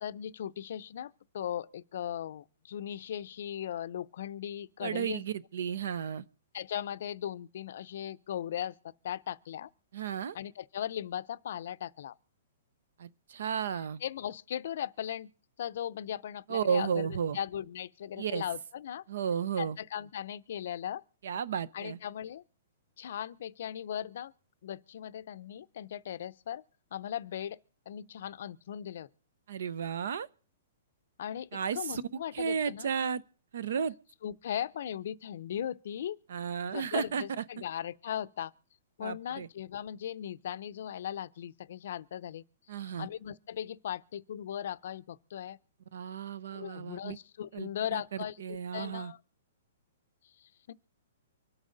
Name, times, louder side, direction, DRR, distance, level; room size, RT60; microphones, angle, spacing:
voice 1, 0.0-5.2 6.5-9.7 10.3-12.1 14.0-15.3 15.6-17.1 17.3-19.0 19.6-21.0 21.7-22.4 23.0-24.3 24.6-26.6 26.9-27.6 27.9-29.1 31.2-32.9 34.2-36.2 36.7-38.5 39.0-42.4 42.8-45.6 46.5-49.2 50.4-50.7, left 10 dB, 60° left, 0.5 m, -38 dB
voice 2, 4.8-6.2 9.9-10.4 13.0-14.0 16.5-17.4 18.2-18.4 19.1-19.8 21.2-22.0 29.5-30.3 31.5-32.0 32.3-33.2 33.5-33.9 36.3-37.2 39.0-39.5 42.7-43.1 45.9-47.2 47.5-49.1, right 7 dB, 70° right, 0.8 m, -33 dB
24.5 x 8.8 x 3.9 m
hypercardioid pair, 165°, 0 cm